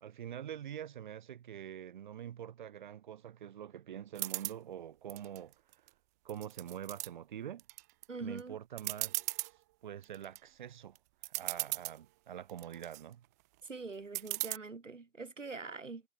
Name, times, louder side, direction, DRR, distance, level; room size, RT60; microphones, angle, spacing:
voice 1, 0.0-5.5 6.2-7.6 8.2-9.2 9.8-11.0 11.4-13.2, right 10 dB, 40° right, 3.1 m, -45 dB
sound 1, 4.1-4.6 5.1-5.9 6.3-7.1 7.6-8.0 8.4-8.5 8.8-9.5 10.0-10.4 11.0-11.1 11.2-12.0 12.5-13.0 14.1-14.6, right 21 dB, 15° right, 0.9 m, -37 dB
voice 2, 8.1-8.6 13.7-16.0, right 4 dB, 85° right, 3.2 m, -43 dB
figure-of-eight pair, 150°, 37 cm